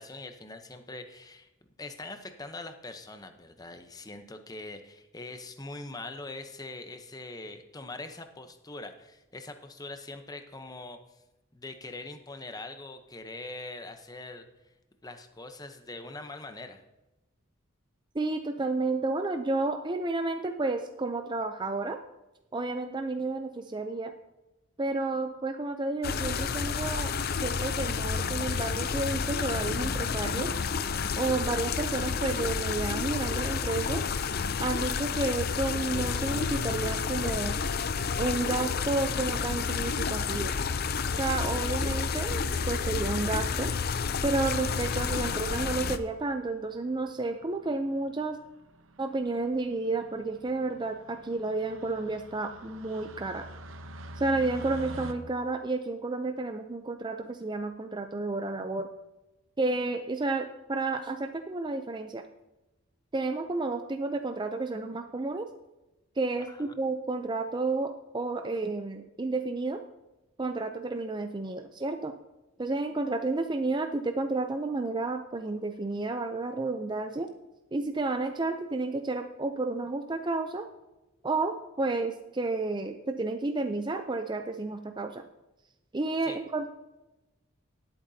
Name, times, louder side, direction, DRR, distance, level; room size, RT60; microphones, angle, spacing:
voice 1, 0.0-1.5 1.8-11.0 11.5-14.5 15.0-16.8 66.5-66.7 86.2-86.4, left 2 dB, 20° left, 7 dB, 0.8 m, -42 dB
voice 2, 18.1-22.0 22.5-24.1 24.8-30.5 31.2-34.0 34.6-37.6 38.2-40.5 41.1-43.7 44.2-48.4 49.0-53.5 54.2-58.9 59.6-62.2 63.1-65.5 66.2-69.8 70.4-72.1 72.6-77.3 77.7-80.7 81.2-85.3 85.9-86.7, right 3 dB, 20° right, 6 dB, 0.5 m, -31 dB
sound 1, 26.0-46.0, left 5 dB, 50° left, 0.5 m, -30 dB
sound 2, 46.0-55.1, right 1 dB, 70° right, 0.9 m, -47 dB
18.0 x 8.8 x 2.8 m, 1.0 s
head